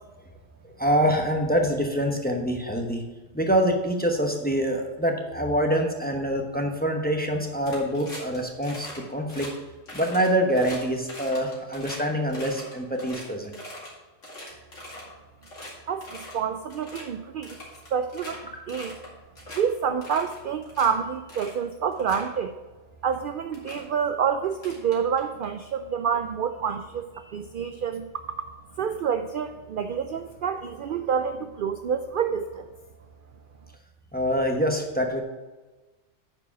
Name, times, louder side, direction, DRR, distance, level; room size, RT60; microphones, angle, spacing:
voice 1, 0.6-3.0 3.3-9.5 9.9-13.6 18.5-18.6 34.1-35.2, equal, 10° left, 2 dB, 0.9 m, -25 dB
sound 1, 7.6-8.4 8.6-9.0 9.3-9.5 9.9-12.0 12.3-13.9 14.2-15.1 15.4-15.7 16.0-16.4 16.7-17.0 17.4-18.4 18.7-19.1 19.4-19.6 20.0-20.9 21.3-21.6 21.9-22.3 23.1-23.2 23.5-23.8 24.5-25.4, left 1 dB, 80° left, 2.8 m, -41 dB
voice 2, 15.9-17.6 17.9-18.4 18.7-18.9 19.5-22.5 23.0-28.1 28.8-32.7, right 7 dB, 60° right, 8 dB, 0.5 m, -28 dB
9.6 x 4.8 x 5.9 m, 1.2 s
omnidirectional pair, 1.3 m